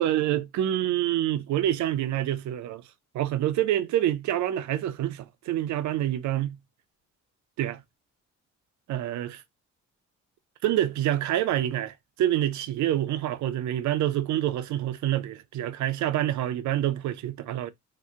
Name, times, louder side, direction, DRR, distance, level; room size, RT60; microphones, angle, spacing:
voice 1, 0.0-2.8 3.1-6.6 7.6-7.8 8.9-9.4 10.6-17.7, right 12 dB, 70° right, 0.5 m, -27 dB
2.6 x 2.1 x 3.5 m
cardioid pair, 90°, 30 cm